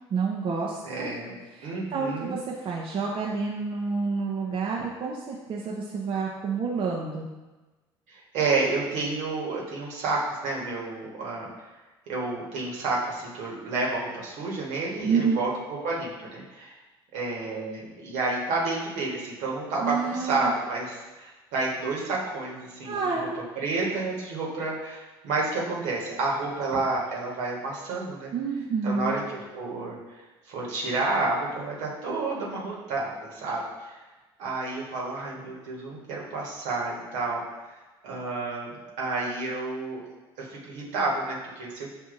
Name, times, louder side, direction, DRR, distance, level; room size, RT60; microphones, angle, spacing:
voice 1, 0.1-1.1 1.6-7.3 15.0-15.4 19.8-20.5 22.8-23.4 28.3-29.2, right 5 dB, 45° right, -3 dB, 0.6 m, -29 dB
voice 2, 0.8-1.4 1.6-2.4 8.1-11.5 12.1-16.7 17.1-23.3 23.6-28.3 28.8-30.2 30.5-34.0 34.4-37.4 38.0-40.0 40.4-41.9, right 3 dB, 70° right, -4 dB, 1.3 m, -30 dB
6.9 x 2.6 x 2.5 m, 1.2 s
hypercardioid pair, 60°, 13 cm